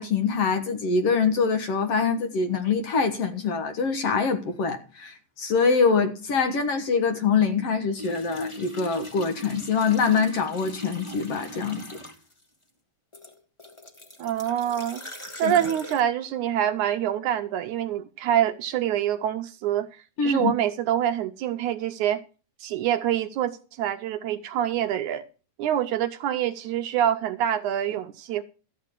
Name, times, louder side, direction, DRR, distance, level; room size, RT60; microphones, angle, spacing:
voice 1, 0.0-11.8 15.4-15.5 20.2-20.5, left 5 dB, 55° left, 2.1 m, -24 dB
sound 1, 8.0-12.4 13.1-16.0, left 1 dB, 20° left, 0.8 m, -40 dB
voice 2, 14.2-15.1 15.4-22.2 22.6-25.3 25.6-28.4, right 10 dB, 75° right, 2.0 m, -26 dB
13.5 x 8.5 x 4.5 m
omnidirectional pair, 3.8 m